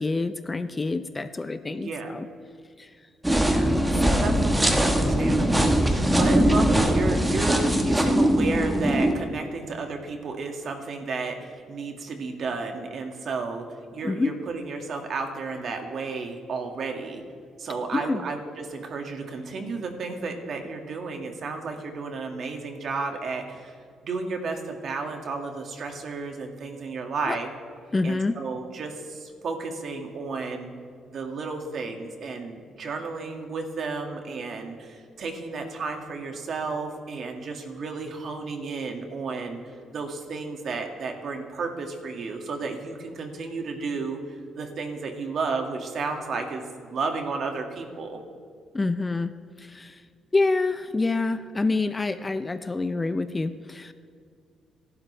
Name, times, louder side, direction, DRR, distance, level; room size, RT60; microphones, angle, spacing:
voice 1, 0.0-2.3 2.8-2.9 3.3-4.4 6.0-6.7 14.0-14.3 17.9-18.2 27.3-27.4 27.9-28.4 48.7-49.3 49.6-50.0 50.3-53.9, left 3 dB, 20° left, 11 dB, 0.6 m, -27 dB
voice 2, 1.7-2.1 3.9-5.8 6.1-13.6 13.9-17.2 17.6-23.7 24.0-27.5 28.0-30.7 31.1-44.2 44.5-48.2, right 4 dB, 60° right, 3 dB, 2.2 m, -32 dB
sound 1, 3.2-9.1, right 1 dB, 10° right, 1.5 m, -21 dB
27.0 x 12.0 x 3.5 m, 2.1 s
cardioid pair, 90°, 0 cm